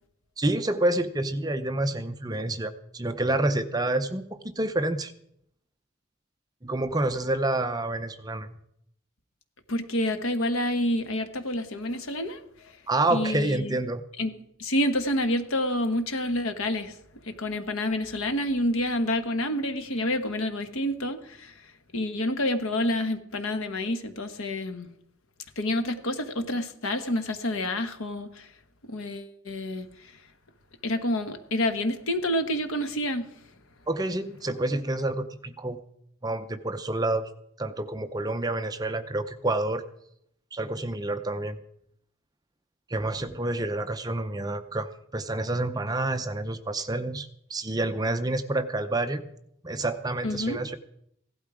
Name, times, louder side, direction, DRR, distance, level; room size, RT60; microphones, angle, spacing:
voice 1, 0.4-5.1 6.6-8.6 12.9-14.0 33.9-35.8 36.2-37.3 37.6-39.8 40.5-41.6 42.9-49.3 49.6-50.8, right 2 dB, 20° right, 9 dB, 0.6 m, -28 dB
voice 2, 9.7-12.7 13.1-13.8 14.2-14.3 14.6-17.0 17.2-21.7 21.9-24.9 25.6-28.5 28.9-30.2 30.8-33.3 50.2-50.6, left 1 dB, 75° left, 8 dB, 1.3 m, -28 dB
16.5 x 12.0 x 4.9 m, 0.73 s
head